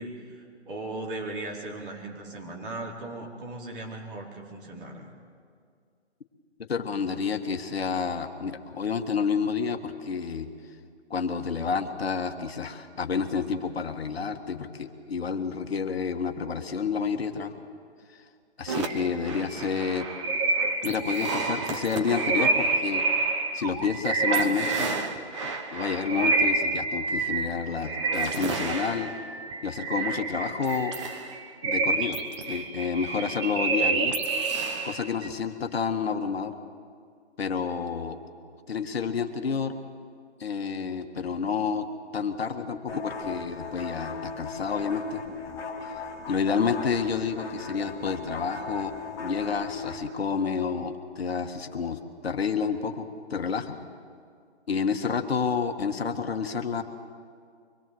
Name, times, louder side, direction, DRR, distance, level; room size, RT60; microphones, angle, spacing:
voice 1, 0.0-5.2, right 2 dB, 50° right, -1 dB, 4.4 m, -38 dB
voice 2, 6.7-10.5 11.1-17.6 18.6-20.1 20.8-23.0 23.5-24.9 25.4-29.1 29.6-31.0 31.6-32.2 32.5-34.2 34.8-36.5 37.4-38.2 38.7-39.8 40.4-41.9 42.1-45.2 46.3-48.9 49.2-53.8 54.7-56.8, left 6 dB, 60° left, 6 dB, 1.7 m, -29 dB
sound 1, 18.7-35.3, right 3 dB, 25° right, 1.3 m, -28 dB
sound 2, 42.9-50.1, left 4 dB, 10° left, 1.9 m, -37 dB
24.5 x 21.5 x 7.8 m, 2.2 s
hypercardioid pair, 155°, 35 cm